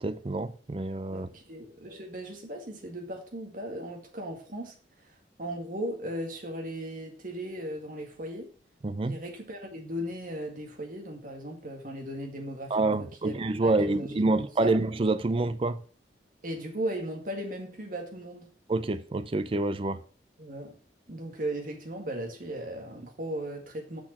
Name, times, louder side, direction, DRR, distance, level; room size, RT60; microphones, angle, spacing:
voice 1, 0.0-1.3 8.8-9.2 12.7-15.8 18.7-20.0, right 2 dB, 30° right, 0.5 m, -27 dB
voice 2, 1.1-4.7 5.4-8.5 9.0-13.4 13.6-14.7 16.4-18.5 20.4-20.8 21.1-24.0, right 1 dB, 50° right, 2.0 m, -37 dB
6.3 x 6.1 x 6.0 m
head